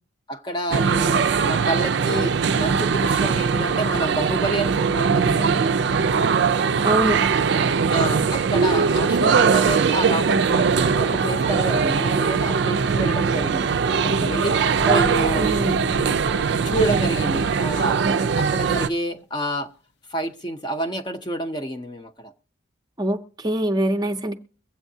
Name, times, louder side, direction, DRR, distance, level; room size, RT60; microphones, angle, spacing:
voice 1, 0.3-5.6 7.9-14.6 14.9-15.5 16.6-19.7 20.1-22.3, right 1 dB, 25° left, 0.6 m, -28 dB
sound 1, 0.7-18.9, right 5 dB, 60° right, 0.4 m, -21 dB
voice 2, 6.8-7.2 14.9-15.1 15.4-15.8 23.0-24.3, right 1 dB, 20° right, 0.6 m, -23 dB
sound 2, 14.7-17.0 17.3-17.7, left 1 dB, 65° left, 0.7 m, -34 dB
22.5 x 8.1 x 2.7 m
head